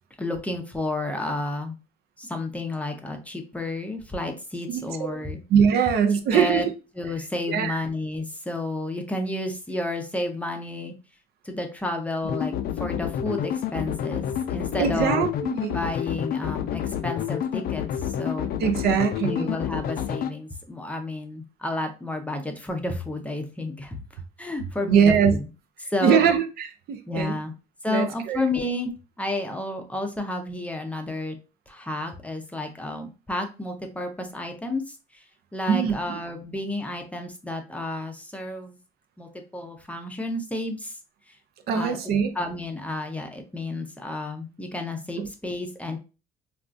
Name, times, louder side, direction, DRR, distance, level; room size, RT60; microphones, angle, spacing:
voice 1, 0.2-1.7 2.2-5.4 6.3-6.7 7.0-10.9 11.4-12.5 12.8-15.3 15.7-18.5 19.2-25.5 25.9-26.3 27.1-27.5 27.8-28.9 29.2-31.4 31.7-35.2 35.5-38.8 39.2-41.0 41.7-42.0 42.3-46.0, left 2 dB, 10° left, 0.5 m, -31 dB
voice 2, 4.7-5.2 5.5-6.7 7.5-7.8 14.8-15.8 18.6-19.6 24.9-25.4 26.0-27.4 27.9-28.4 35.7-36.2 41.7-42.3 45.2-45.3, right 7 dB, 70° right, 0.5 m, -22 dB
sound 1, 12.2-20.3, left 10 dB, 60° left, 0.4 m, -29 dB
3.6 x 2.4 x 2.4 m
cardioid pair, 110°, 17 cm